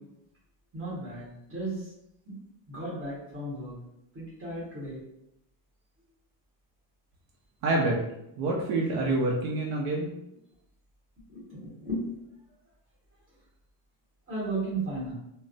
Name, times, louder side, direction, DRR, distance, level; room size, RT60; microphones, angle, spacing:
voice 1, 0.7-1.9 2.2-2.3 2.7-3.8 4.1-5.0 11.3-12.1 14.3-15.1, right 2 dB, 30° right, -7 dB, 1.4 m, -35 dB
voice 2, 7.6-8.0 8.4-10.1, right 2 dB, 75° right, -2 dB, 0.6 m, -27 dB
3.0 x 2.0 x 2.6 m, 0.84 s
cardioid pair, 160°, 46 cm